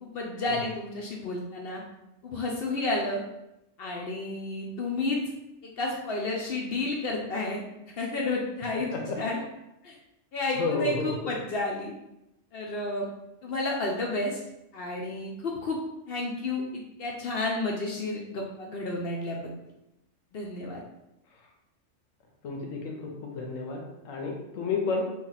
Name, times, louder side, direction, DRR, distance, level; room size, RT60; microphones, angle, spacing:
voice 1, 0.0-1.8 2.2-3.2 3.8-5.2 5.6-8.9 9.2-9.4 9.8-10.0 10.3-11.9 12.5-13.1 13.4-14.4 14.7-15.8 16.1-19.5 20.3-20.8, left 2 dB, 60° left, -1 dB, 0.7 m, -31 dB
voice 2, 8.9-9.2 10.6-11.1 21.3-21.5 22.4-25.1, left 4 dB, 90° left, 1 dB, 1.1 m, -31 dB
2.9 x 2.6 x 3.9 m, 0.89 s
omnidirectional pair, 1.3 m